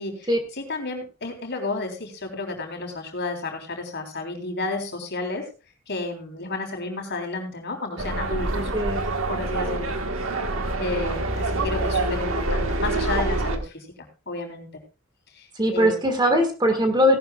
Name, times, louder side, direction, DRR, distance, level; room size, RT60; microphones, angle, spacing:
voice 1, 0.0-5.5 5.9-8.7 9.2-10.0 10.8-13.9 14.3-14.8 15.3-16.0, left 3 dB, 55° left, 3 dB, 3.5 m, -32 dB
sound 1, 8.0-13.6, right 2 dB, 75° right, 1.5 m, -26 dB
voice 2, 8.5-9.0 15.6-17.2, equal, 20° right, 6 dB, 1.7 m, -21 dB
17.5 x 12.0 x 2.3 m, 0.32 s
head